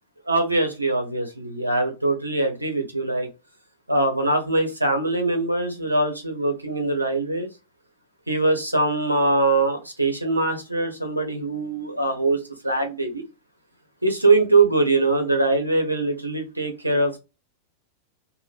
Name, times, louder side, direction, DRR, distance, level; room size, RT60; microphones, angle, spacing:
voice 1, 0.3-3.3 3.9-7.5 8.3-12.4 12.6-13.2 14.0-17.2, right 2 dB, 85° right, 4 dB, 0.8 m, -22 dB
2.7 x 2.1 x 3.3 m, 0.27 s
figure-of-eight pair, 90°, 0 cm